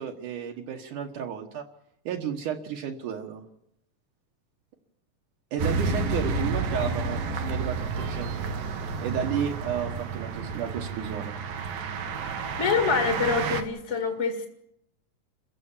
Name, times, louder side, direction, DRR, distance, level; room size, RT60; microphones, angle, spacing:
voice 1, 0.0-1.7 2.1-3.4 5.5-8.6 9.0-11.4, right 8 dB, 70° right, 1 dB, 2.8 m, -32 dB
sound 1, 5.6-13.6, right 4 dB, 85° right, 3.3 m, -30 dB
voice 2, 12.6-14.5, left 5 dB, 25° left, 3 dB, 1.8 m, -25 dB
28.0 x 15.5 x 7.3 m, 0.77 s
omnidirectional pair, 3.9 m